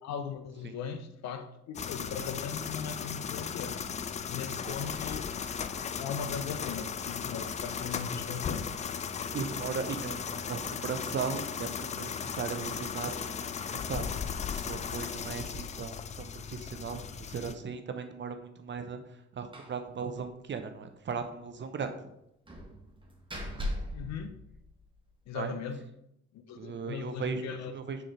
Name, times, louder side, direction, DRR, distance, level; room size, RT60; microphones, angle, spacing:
voice 1, 0.0-3.8 4.3-5.3 6.0-8.7 23.9-24.3 25.3-25.8 26.3-27.7, left 7 dB, 50° left, 8 dB, 0.7 m, -39 dB
sound 1, 1.7-17.5, left 7 dB, 20° left, 0.4 m, -36 dB
voice 2, 4.7-5.1 9.3-13.4 13.7-14.1 14.5-19.0 19.3-21.9 25.3-25.5 26.6-28.0, right 5 dB, 35° right, 8 dB, 0.7 m, -37 dB
Slam, 19.5-19.8 20.1-20.2 20.6-20.7 22.5-25.1, left 1 dB, 15° right, 1.3 m, -39 dB
6.2 x 4.6 x 3.6 m, 0.79 s
figure-of-eight pair, 45°, 34 cm